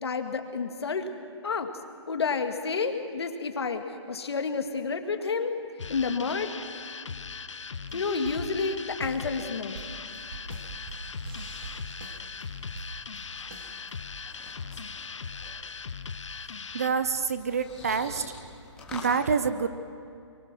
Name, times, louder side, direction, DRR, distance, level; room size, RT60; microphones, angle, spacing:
voice 1, 0.0-1.1 1.4-1.7 2.1-3.8 4.1-5.5 5.9-6.5 7.9-9.8, left 4 dB, 60° left, 6 dB, 1.9 m, -29 dB
sound 1, 5.8-16.9, left 5 dB, 80° left, 1.1 m, -39 dB
sound 2, 7.7-14.0, right 3 dB, 50° right, 2.2 m, -45 dB
sound 3, 9.6-19.2, left 3 dB, 5° left, 2.0 m, -49 dB
voice 2, 16.7-18.2 18.9-19.7, right 5 dB, 30° right, 12 dB, 0.6 m, -27 dB
23.5 x 23.5 x 6.2 m, 2.4 s
hypercardioid pair, 175°, 15 cm